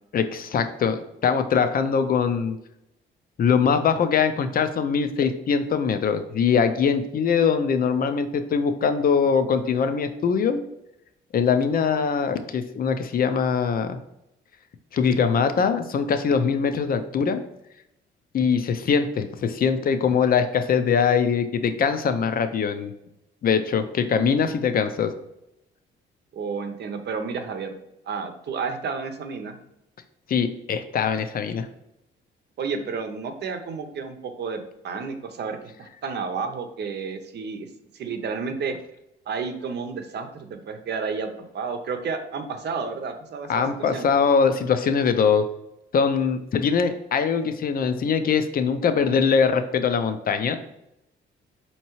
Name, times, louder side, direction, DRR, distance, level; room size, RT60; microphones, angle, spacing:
voice 1, 0.1-2.6 3.4-10.6 11.3-14.0 14.9-17.4 18.3-22.9 23.4-25.1 30.3-31.7 43.5-45.4 45.9-50.6, left 6 dB, 45° left, 8 dB, 0.5 m, -22 dB
voice 2, 26.3-27.7 28.1-29.6 32.6-37.7 37.9-38.8 39.3-44.1, right 5 dB, 60° right, 6 dB, 0.7 m, -31 dB
4.5 x 2.9 x 3.0 m, 0.86 s
cardioid pair, 90°, 20 cm